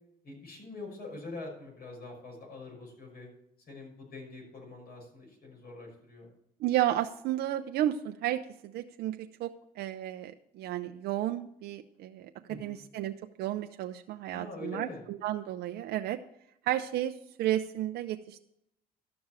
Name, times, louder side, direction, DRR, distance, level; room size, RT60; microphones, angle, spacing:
voice 1, 0.2-3.3 3.7-6.3 12.5-12.8 14.3-15.0, left 3 dB, 70° left, 0 dB, 6.0 m, -44 dB
voice 2, 6.6-16.2 16.7-17.1 17.4-18.4, right 13 dB, 75° right, 6 dB, 0.6 m, -32 dB
13.5 x 6.1 x 7.5 m, 0.78 s
cardioid pair, 110°, 17 cm